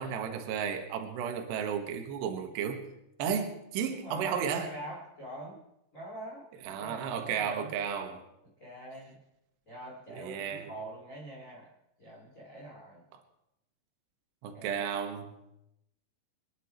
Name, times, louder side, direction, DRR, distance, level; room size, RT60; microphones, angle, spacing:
voice 1, 0.0-2.9 3.2-4.7 6.6-8.2 10.2-10.7 14.4-15.4, right 7 dB, 65° right, 5 dB, 3.4 m, -33 dB
voice 2, 3.9-5.6 5.9-7.7 8.6-9.2 9.7-11.7 12.0-13.1 14.5-14.8, right 1 dB, 20° left, -3 dB, 2.2 m, -45 dB
26.5 x 11.0 x 4.5 m, 0.84 s
omnidirectional pair, 5.7 m